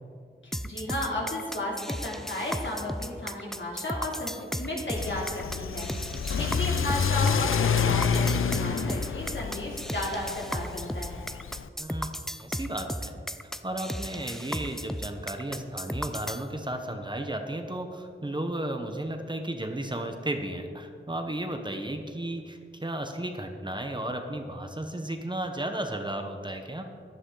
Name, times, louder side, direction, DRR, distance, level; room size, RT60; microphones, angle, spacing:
voice 1, 0.4-5.9 6.2-11.3, left 1 dB, 65° left, -3 dB, 3.0 m, -34 dB
sound 1, 0.5-16.4, equal, ahead, 0.5 m, -35 dB
Car / Accelerating revving vroom, 5.0-11.7, left 6 dB, 80° left, 0.5 m, -28 dB
voice 2, 6.1-6.5 11.8-12.1 12.4-26.8, right 1 dB, 20° right, 4 dB, 1.1 m, -34 dB
15.0 x 11.0 x 3.9 m, 2.2 s
wide cardioid pair, 85°, 21 cm